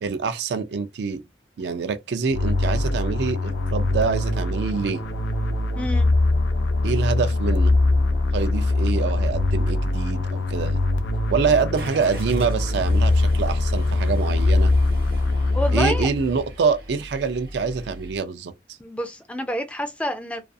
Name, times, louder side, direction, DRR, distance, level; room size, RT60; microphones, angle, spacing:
voice 1, 0.0-1.2 1.6-5.0 6.8-7.7 8.3-10.8 11.3-14.7 15.7-18.5, right 5 dB, 70° right, 0.4 m, -25 dB
sound 1, 2.3-16.4, left 2 dB, 80° left, 0.5 m, -22 dB
voice 2, 5.7-6.1 15.5-16.1 18.8-20.5, equal, 5° left, 0.3 m, -28 dB
Car / Engine starting, 11.7-18.2, equal, 55° right, 0.7 m, -39 dB
2.4 x 2.3 x 2.5 m
head